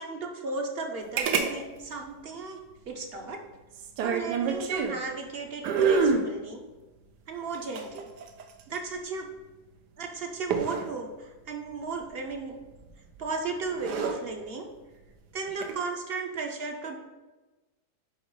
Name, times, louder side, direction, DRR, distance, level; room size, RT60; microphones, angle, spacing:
voice 1, 0.0-2.6 2.9-3.4 4.0-6.6 7.3-8.1 8.7-9.3 10.0-12.6 13.2-14.7 15.3-16.9, right 4 dB, 50° right, 3 dB, 0.8 m, -35 dB
sound 1, 1.2-1.5 1.8-1.9 3.7-5.0 5.6-6.3 7.5-8.7 10.5-10.9 12.8-13.1 13.6-14.1 15.5-15.8, right 5 dB, 85° right, 1.3 m, -27 dB
5.5 x 5.2 x 4.8 m, 1.1 s
omnidirectional pair, 1.7 m